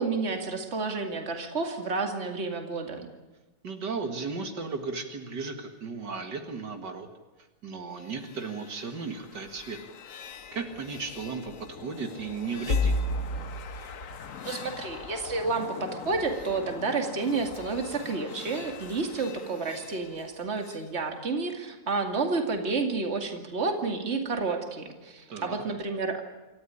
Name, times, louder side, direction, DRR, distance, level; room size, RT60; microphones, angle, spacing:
voice 1, 0.0-3.1 14.4-26.2, right 4 dB, 40° right, 4 dB, 2.5 m, -30 dB
voice 2, 3.6-7.1 7.6-9.8 10.5-12.9 25.3-25.6, right 4 dB, 75° right, 5 dB, 2.4 m, -35 dB
sound 1, 8.0-20.9, left 3 dB, 55° left, 1.4 m, -37 dB
27.5 x 14.0 x 10.0 m, 1.1 s
omnidirectional pair, 1.9 m